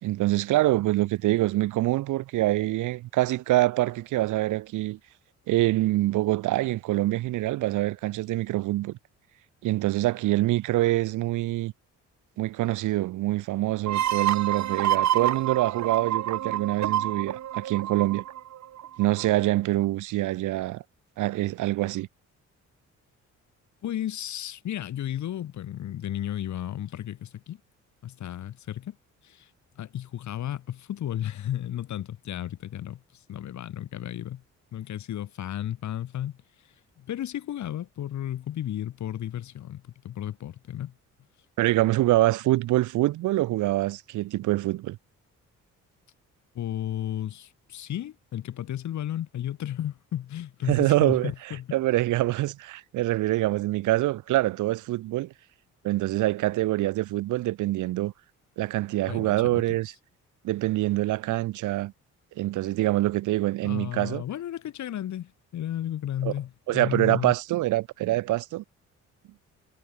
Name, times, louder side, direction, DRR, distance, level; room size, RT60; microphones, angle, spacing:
voice 1, 0.0-5.0 5.5-9.0 9.6-11.7 12.4-18.2 19.0-20.8 21.2-22.1 41.6-45.0 50.7-51.3 51.7-55.3 55.8-58.1 58.6-59.9 60.4-61.9 62.4-64.2 66.2-66.3 66.7-68.6, right 16 dB, 85° right, 1.1 m, -25 dB
sound 1, 13.9-19.3, right 11 dB, 65° right, 1.7 m, -28 dB
voice 2, 23.8-27.6 28.0-29.0 29.2-29.5 29.8-34.4 34.7-36.4 37.0-40.9 46.5-51.7 59.1-59.8 63.6-67.3, left 11 dB, 70° left, 2.9 m, -33 dB
cardioid pair, 90°, 30 cm